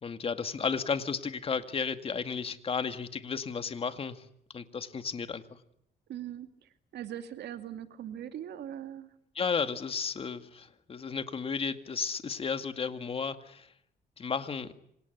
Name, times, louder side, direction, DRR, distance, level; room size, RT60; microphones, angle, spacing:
voice 1, 0.0-4.3 4.5-5.4 9.4-13.7 14.2-14.7, left 5 dB, 35° left, 9 dB, 2.1 m, -33 dB
voice 2, 6.1-9.1, right 10 dB, 80° right, 9 dB, 2.6 m, -41 dB
28.0 x 25.5 x 8.2 m, 0.71 s
cardioid pair, 155°, 17 cm